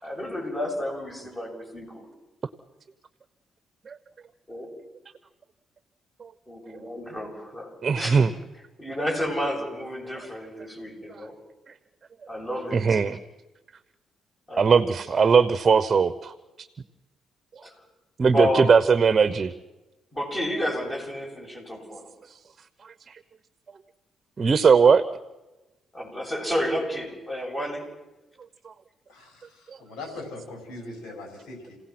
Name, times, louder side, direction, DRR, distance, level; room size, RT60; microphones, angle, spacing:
voice 1, 0.0-2.1 4.5-4.7 6.5-8.3 8.8-11.3 12.3-13.0 14.5-14.9 17.6-17.7 18.3-18.7 20.1-22.1 25.9-27.8, equal, 20° left, 1 dB, 7.6 m, -31 dB
voice 2, 7.8-8.3 12.7-13.2 14.6-16.3 18.2-19.5 24.4-25.0 28.6-28.7, right 5 dB, 40° right, 13 dB, 1.0 m, -19 dB
voice 3, 29.1-29.4 29.8-31.8, left 2 dB, 85° left, 2 dB, 5.7 m, -40 dB
28.5 x 17.0 x 6.1 m, 1.1 s
cardioid pair, 90°, 0 cm